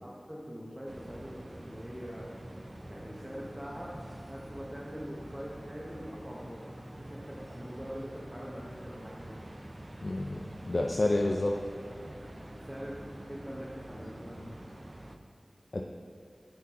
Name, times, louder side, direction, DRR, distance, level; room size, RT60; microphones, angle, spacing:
voice 1, 0.0-2.3 2.9-3.9 4.3-6.6 7.0-9.4 12.6-12.9 13.3-14.6, equal, 10° right, -5 dB, 0.7 m, -43 dB
sound 1, 0.9-15.2, right 1 dB, 30° right, 0.4 m, -46 dB
voice 2, 10.0-11.5 15.7-15.8, left 2 dB, 55° left, 1 dB, 0.3 m, -29 dB
9.3 x 3.8 x 2.8 m, 2.4 s
wide cardioid pair, 70°, 0 cm